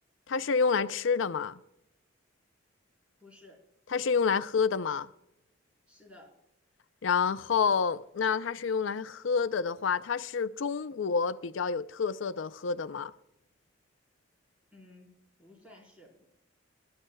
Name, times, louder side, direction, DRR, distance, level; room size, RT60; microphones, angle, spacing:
voice 1, 0.3-1.6 3.9-5.1 7.0-13.1, left 5 dB, 75° left, 0.5 m, -28 dB
voice 2, 3.2-3.6 5.9-6.3 14.7-16.2, left 2 dB, 5° right, 4.2 m, -55 dB
21.5 x 12.0 x 2.2 m
head